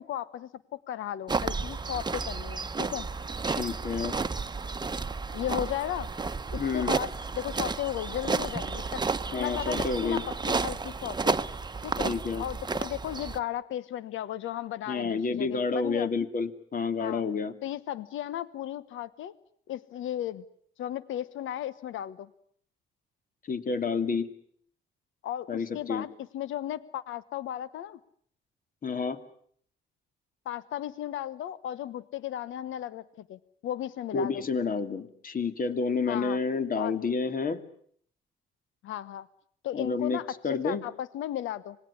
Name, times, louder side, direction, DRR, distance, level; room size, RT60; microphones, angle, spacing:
voice 1, 0.0-3.1 5.3-6.1 6.5-7.1 7.3-9.0 9.4-9.7 10.0-10.2 10.5-11.4 11.8-12.1 12.4-16.1 17.0-17.2 17.6-19.3 19.7-20.4 20.8-22.3 25.2-28.0 30.4-33.0 33.3-34.4 36.1-36.4 36.7-36.9 38.8-39.3 39.6-40.2 40.5-41.8, left 12 dB, 80° left, 16 dB, 1.1 m, -35 dB
sound 1, 1.3-13.4, right 4 dB, 20° right, 1.1 m, -32 dB
voice 2, 3.5-4.1 6.6-6.9 9.3-10.2 12.0-12.4 14.9-17.5 23.5-24.3 25.5-26.1 28.8-29.2 34.1-37.6 39.7-40.8, left 4 dB, 45° left, 9 dB, 2.7 m, -29 dB
25.5 x 20.0 x 9.9 m, 0.64 s
cardioid pair, 90°, 20 cm